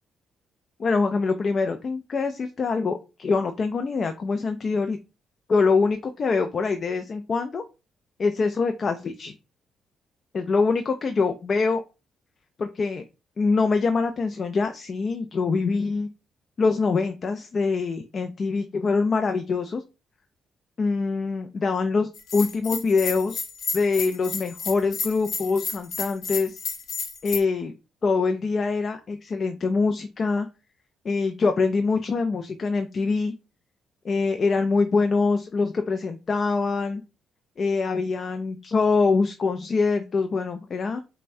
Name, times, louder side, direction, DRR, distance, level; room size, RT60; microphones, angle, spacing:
voice 1, 0.8-5.0 5.5-7.6 8.2-9.3 10.3-11.8 12.6-13.0 13.4-16.1 16.6-19.8 20.8-23.4 23.7-26.6 27.2-27.7 28.0-30.5 31.0-33.3 34.0-37.0 37.6-41.0, left 4 dB, 45° left, 7 dB, 0.4 m, -24 dB
Bell, 22.1-27.4, left 4 dB, 70° left, 1.0 m, -32 dB
5.4 x 2.1 x 2.6 m, 0.29 s
cardioid pair, 90°, 0 cm